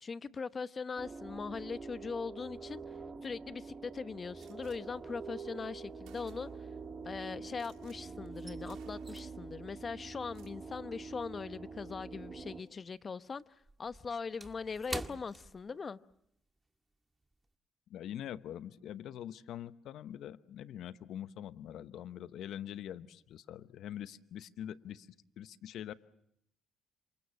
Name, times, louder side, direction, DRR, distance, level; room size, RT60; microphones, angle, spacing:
voice 1, 0.0-2.8 3.2-6.5 7.0-13.4 13.8-16.0, left 5 dB, 40° left, 1.0 m, -40 dB
sound 1, 1.0-12.6, right 4 dB, 35° right, 2.9 m, -46 dB
Gunshot gunfire, 4.4-4.8 5.6-5.7 6.0-6.7 7.5-8.0 8.3-8.4 8.7-9.4 10.2-10.6, right 11 dB, 80° right, 2.6 m, -63 dB
sound 2, 5.0-5.4 5.7-7.7 8.0-12.7 12.9-16.3 16.6-16.8 17.2-17.5, right 2 dB, 15° right, 1.7 m, -49 dB
voice 2, 17.9-25.1 25.4-25.9, left 10 dB, 75° left, 0.9 m, -44 dB
27.5 x 24.0 x 7.3 m
supercardioid pair, 65°, 0 cm